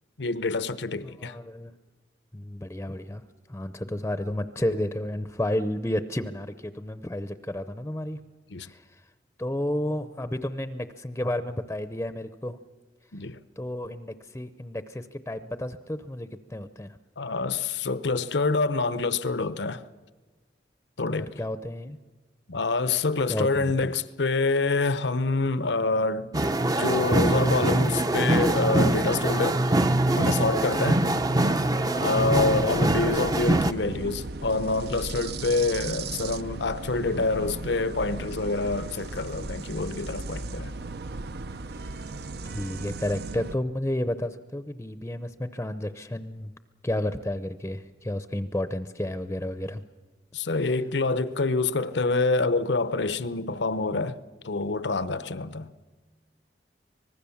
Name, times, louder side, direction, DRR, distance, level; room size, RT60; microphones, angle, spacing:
voice 1, 0.2-1.4 8.5-8.7 13.1-13.4 17.2-19.8 21.0-21.4 22.5-26.3 26.8-29.6 30.2-31.1 32.0-40.7 50.3-54.2 54.4-55.7, left 3 dB, 80° left, 0.9 m, -26 dB
voice 2, 1.0-1.7 2.3-3.2 3.5-8.2 8.6-9.0 9.4-12.6 13.6-17.0 21.1-22.0 23.3-24.0 32.4-32.7 42.4-46.5 46.8-49.8, left 1 dB, 15° left, 0.7 m, -31 dB
sound 1, 26.3-33.7, right 1 dB, 20° right, 0.6 m, -23 dB
sound 2, 32.1-43.6, right 3 dB, 65° right, 0.7 m, -36 dB
25.5 x 19.5 x 7.1 m
head